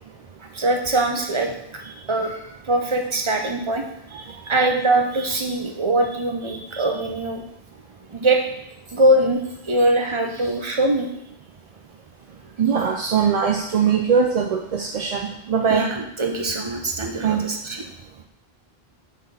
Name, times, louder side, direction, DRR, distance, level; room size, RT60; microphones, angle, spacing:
voice 1, 0.5-1.5 1.8-2.3 2.6-3.8 4.1-7.4 8.1-8.4 8.9-11.1 15.7-17.8, right 1 dB, 30° right, 2 dB, 0.9 m, -22 dB
voice 2, 12.6-15.8 17.2-17.4, right 6 dB, 50° right, 1 dB, 0.5 m, -21 dB
5.8 x 4.3 x 5.6 m, 0.78 s
omnidirectional pair, 1.0 m